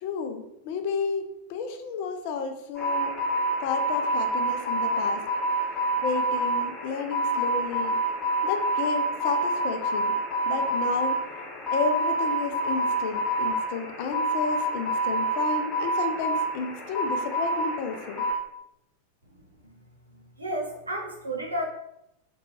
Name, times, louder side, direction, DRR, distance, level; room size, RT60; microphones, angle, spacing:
voice 1, 0.0-3.2 3.6-5.2 6.0-7.9 8.4-10.1 10.5-11.2 11.7-18.2, left 5 dB, 50° left, 6 dB, 0.3 m, -32 dB
sound 1, 2.8-18.3, right 1 dB, 15° left, 1.3 m, -27 dB
voice 2, 20.1-21.6, right 1 dB, 80° right, 0 dB, 0.5 m, -32 dB
2.4 x 2.2 x 2.9 m, 0.83 s
figure-of-eight pair, 90°, 0 cm